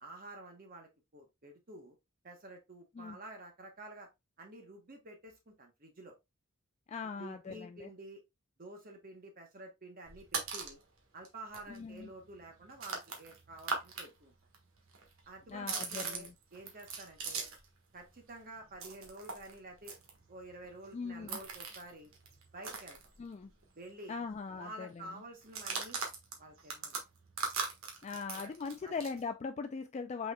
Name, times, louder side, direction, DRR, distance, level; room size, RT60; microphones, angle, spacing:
voice 1, 0.0-2.0 2.2-4.1 4.4-6.1 7.2-8.2 8.6-10.8 11.1-14.3 15.3-17.5 17.9-20.0 20.3-22.1 22.5-23.0 23.8-24.2 24.6-26.0 26.4-26.9 28.3-28.5 28.8-28.9, right 2 dB, 40° right, 1.0 m, -50 dB
voice 2, 6.9-7.9 11.7-12.1 15.5-16.3 20.9-21.4 23.2-23.5 24.1-25.2 28.0-30.3, left 5 dB, 30° left, 0.3 m, -40 dB
sound 1, 10.0-10.8 11.2-11.3 11.5-14.1 14.3-17.7 18.0-23.6 23.9-24.0 24.3-24.7 25.4-29.2, right 5 dB, 70° right, 1.4 m, -41 dB
5.7 x 4.2 x 2.2 m
head